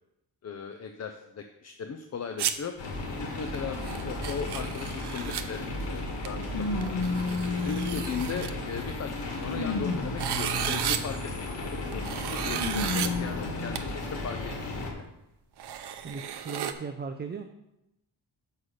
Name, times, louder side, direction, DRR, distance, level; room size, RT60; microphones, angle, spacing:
voice 1, 0.4-2.7 3.2-3.8 4.0-7.2 7.7-11.2 11.8-14.4 14.6-14.8, left 6 dB, 40° left, 6 dB, 0.5 m, -37 dB
sound 1, 2.4-2.5 3.5-3.6 3.8-5.4 6.2-6.3 6.8-8.5 9.4-9.7 10.2-11.0 11.9-13.1 13.8-13.9 14.8-14.9 15.6-16.7, right 9 dB, 65° right, 0.7 m, -33 dB
sound 2, 2.8-14.9, left 2 dB, 85° left, 2.1 m, -35 dB
sound 3, 5.3-5.4 6.5-8.6 9.1-11.2 12.3-13.8 14.5-14.6 15.7-15.8, left 3 dB, 65° left, 1.3 m, -33 dB
voice 2, 16.0-17.4, right 5 dB, 25° right, 6 dB, 0.4 m, -37 dB
6.5 x 5.6 x 6.4 m, 0.89 s
wide cardioid pair, 160°, 43 cm